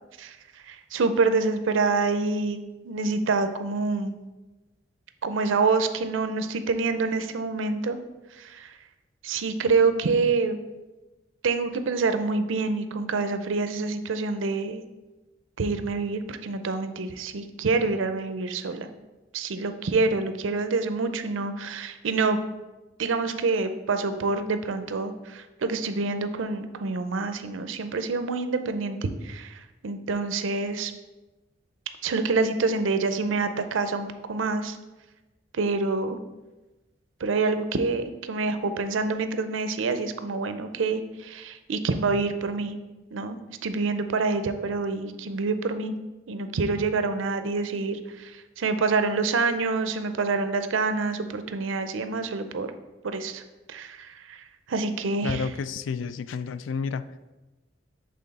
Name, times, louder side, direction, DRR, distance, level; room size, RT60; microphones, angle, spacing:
voice 1, 0.7-4.2 5.2-8.0 8.4-8.7 9.2-10.6 11.4-14.8 15.6-18.9 19.3-22.4 23.0-30.9 32.0-34.8 35.5-36.2 37.2-42.8 43.1-45.9 46.3-52.7 53.0-53.4 53.7-55.5, right 4 dB, 85° right, 9 dB, 0.5 m, -27 dB
voice 2, 55.2-57.1, left 5 dB, 80° left, 14 dB, 0.3 m, -30 dB
7.6 x 3.6 x 4.1 m, 1.1 s
head